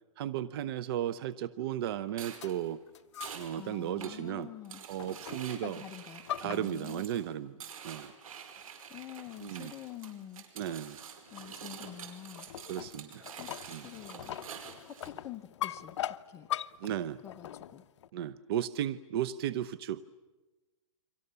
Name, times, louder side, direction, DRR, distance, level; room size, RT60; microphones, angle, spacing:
voice 1, 0.2-2.8 3.3-4.5 4.9-5.8 6.4-8.1 9.4-9.7 10.6-11.0 12.7-13.3 13.7-13.9 16.8-17.2 18.1-20.0, right 11 dB, 45° right, 17 dB, 0.8 m, -35 dB
sound 1, 2.1-15.1, right 7 dB, 75° right, 5.2 m, -48 dB
sound 2, 2.3-3.6 4.0-4.3 5.0-5.6 5.9-7.3 8.0-8.1 8.6-8.7 9.3-9.6 9.9-10.1 10.6-18.1, left 11 dB, 55° left, 0.9 m, -42 dB
voice 2, 3.6-4.8 5.3-7.0 8.9-10.4 11.3-12.5 13.4-14.3 14.9-16.0 16.3-16.5 17.2-17.8, left 10 dB, 15° left, 5 dB, 1.1 m, -46 dB
30.0 x 24.5 x 6.9 m, 1.2 s
hypercardioid pair, 160°, 18 cm